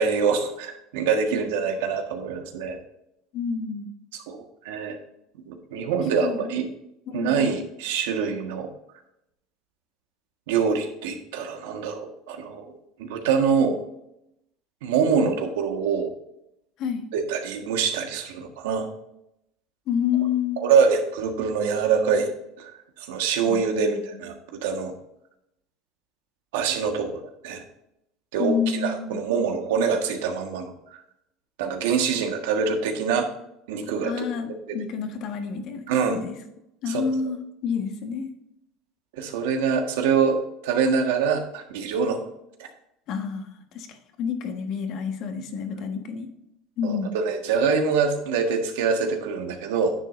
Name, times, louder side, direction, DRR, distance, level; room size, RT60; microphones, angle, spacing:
voice 1, 0.0-2.8 4.3-5.0 5.5-6.7 7.1-8.7 10.5-13.8 14.8-16.1 17.1-18.9 20.6-22.3 22.6-22.7 23.0-24.9 26.5-27.6 28.3-30.7 31.6-33.3 33.7-34.2 35.9-36.2 36.9-37.1 39.1-40.4 40.6-42.2 46.8-49.9, right 6 dB, 90° right, 4 dB, 1.5 m, -25 dB
voice 2, 3.3-3.9 6.2-6.6 7.1-7.4 16.8-17.1 19.9-20.8 23.5-24.2 28.4-29.3 34.0-36.4 36.8-38.3 43.1-46.3 46.8-47.2, left 6 dB, 55° left, 6 dB, 1.4 m, -29 dB
9.9 x 7.3 x 2.6 m, 0.81 s
supercardioid pair, 130°, 0 cm